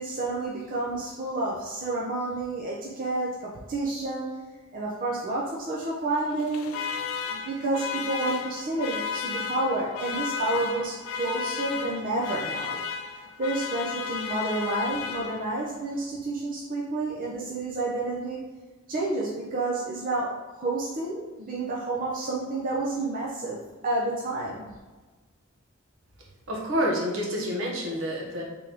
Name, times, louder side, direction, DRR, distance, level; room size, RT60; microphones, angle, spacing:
voice 1, 0.0-4.3 4.7-6.8 7.3-12.8 13.4-18.4 18.9-24.7, right 2 dB, 45° right, -3 dB, 0.5 m, -30 dB
Alarm, 6.3-15.7, left 6 dB, 85° left, 0.4 m, -34 dB
voice 2, 26.5-28.4, equal, 75° right, -2 dB, 1.0 m, -28 dB
3.8 x 3.4 x 2.9 m, 1.3 s
head